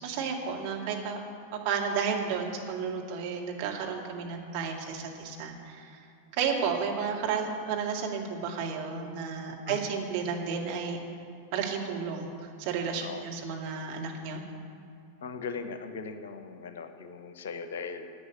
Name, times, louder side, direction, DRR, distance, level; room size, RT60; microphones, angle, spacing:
voice 1, 0.0-6.0 6.3-11.0 11.5-12.3 12.6-14.4, right 6 dB, 45° right, 0 dB, 2.1 m, -32 dB
voice 2, 15.2-18.1, left 5 dB, 60° left, 8 dB, 1.0 m, -39 dB
11.5 x 8.0 x 9.9 m, 2.6 s
figure-of-eight pair, 90°, 0 cm